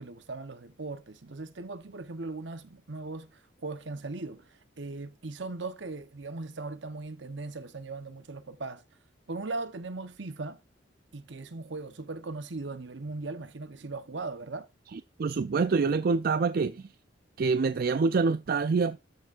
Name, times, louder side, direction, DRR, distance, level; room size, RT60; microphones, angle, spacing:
voice 1, 0.0-8.8 9.3-10.6 11.1-14.7, right 3 dB, 70° right, 0.9 m, -39 dB
voice 2, 14.9-16.9 17.4-19.0, right 4 dB, 50° right, 0.4 m, -26 dB
13.0 x 6.7 x 2.5 m
head